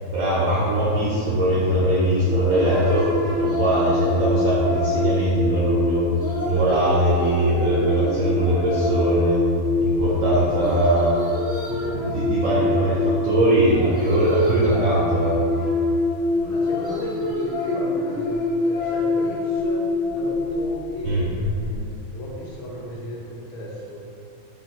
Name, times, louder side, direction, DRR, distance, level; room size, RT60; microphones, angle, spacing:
voice 1, 0.1-3.0 3.4-6.0 6.5-9.4 9.8-11.1 11.7-15.4 21.0-21.3, right 1 dB, 75° right, -7 dB, 1.0 m, -21 dB
sound 1, 2.3-21.8, left 2 dB, 45° left, 0.7 m, -25 dB
voice 2, 10.3-10.7 16.3-24.0, left 1 dB, 90° left, -3 dB, 1.1 m, -35 dB
3.5 x 2.5 x 2.3 m, 2.4 s
omnidirectional pair, 1.6 m